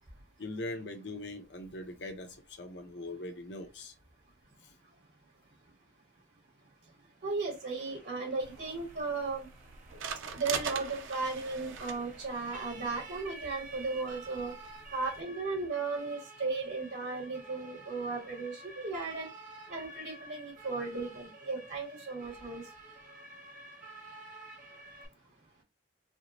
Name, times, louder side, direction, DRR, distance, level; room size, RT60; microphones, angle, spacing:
voice 1, 0.4-3.9, left 2 dB, 65° left, 0.7 m, -41 dB
voice 2, 7.2-9.5 10.3-14.5 14.9-19.3 19.7-22.6, right 3 dB, 70° right, 2.1 m, -35 dB
Siren, 7.4-25.1, right 2 dB, 40° right, 0.8 m, -51 dB
sound 1, 8.4-15.2, right 6 dB, 90° right, 0.5 m, -43 dB
4.3 x 2.0 x 2.8 m
head